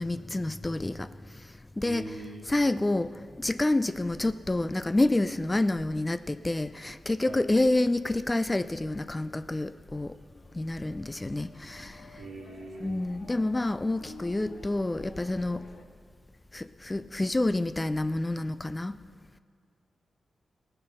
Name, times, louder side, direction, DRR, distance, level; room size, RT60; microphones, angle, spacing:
voice 1, 0.0-2.1 2.5-10.2 10.5-12.2 12.8-15.6 16.5-19.0, left 2 dB, 20° left, 13 dB, 0.4 m, -28 dB
voice 2, 1.8-2.5 7.2-7.4 12.2-13.0, right 2 dB, 75° right, -6 dB, 1.7 m, -41 dB
sound 1, 8.5-15.9, left 2 dB, 60° left, 1.1 m, -51 dB
17.5 x 6.7 x 5.6 m, 2.1 s
cardioid pair, 60°, 0 cm